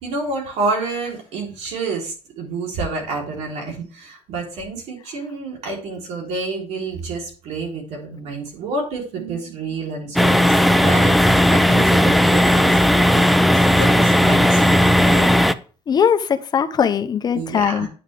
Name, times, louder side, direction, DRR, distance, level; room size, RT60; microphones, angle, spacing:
voice 1, 0.0-13.2 13.8-15.3 17.3-17.9, right 3 dB, 75° right, 3.7 m, -29 dB
sound 1, 10.2-15.5, equal, ahead, 0.5 m, -15 dB
voice 2, 15.9-17.9, left 7 dB, 35° left, 0.7 m, -20 dB
9.7 x 6.4 x 3.5 m
cardioid pair, 120°, 11 cm